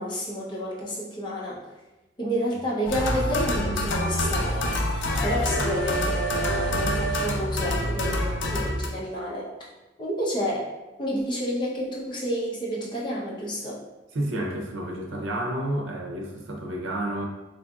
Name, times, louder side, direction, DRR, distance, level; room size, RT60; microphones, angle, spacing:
voice 1, 0.0-1.6 2.2-4.8 5.2-9.5 10.0-10.7 11.0-13.8, equal, 25° left, -5 dB, 0.8 m, -30 dB
sound 1, 2.8-8.9, equal, 70° left, 0.5 m, -26 dB
voice 2, 14.1-17.2, right 1 dB, 85° right, 1 dB, 0.7 m, -30 dB
3.8 x 3.2 x 2.4 m, 1.0 s
head